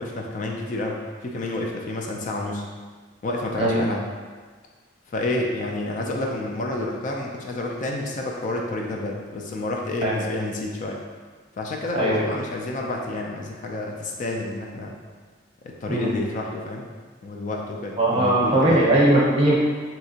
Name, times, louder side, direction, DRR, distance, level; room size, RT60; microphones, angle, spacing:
voice 1, 0.0-2.7 3.2-4.1 5.1-11.0 11.5-14.9 15.6-16.9 17.2-18.8, left 2 dB, 40° left, 0 dB, 0.3 m, -29 dB
voice 2, 18.0-19.6, right 1 dB, 30° right, -5 dB, 0.7 m, -19 dB
3.3 x 2.8 x 2.7 m, 1.5 s
head